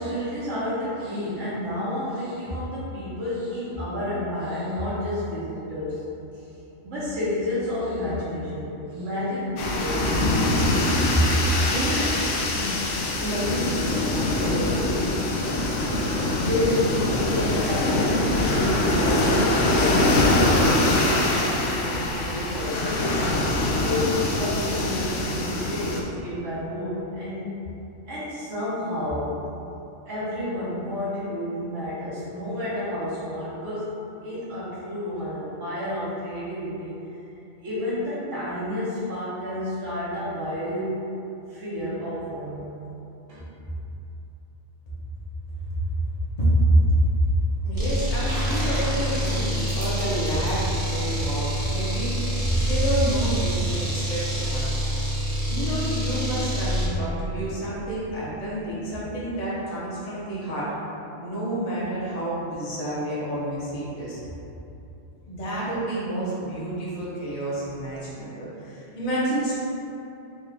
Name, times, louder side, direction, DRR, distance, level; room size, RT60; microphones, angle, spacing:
voice 1, 0.0-6.0 6.8-10.3 11.1-11.4 11.6-12.1 12.4-12.8 13.2-15.2 16.5-23.0 23.8-27.5 28.1-29.3 30.1-33.9 34.2-37.0 37.6-41.0 41.5-42.7 43.3-43.8 52.4-52.6, left 1 dB, 75° right, -10 dB, 1.3 m, -30 dB
sound 1, 9.6-26.0, left 2 dB, 80° left, 0.9 m, -23 dB
voice 2, 45.7-46.1 46.4-47.0 47.6-52.1 52.6-54.7 55.5-60.7 61.2-64.2 65.3-69.6, right 1 dB, 35° left, -8 dB, 0.9 m, -28 dB
sound 2, 47.7-56.9, equal, 25° right, 0.6 m, -26 dB
sound 3, 48.3-52.0 53.8-53.9, right 1 dB, 60° right, 1.0 m, -36 dB
4.5 x 2.4 x 3.3 m, 2.9 s
omnidirectional pair, 1.3 m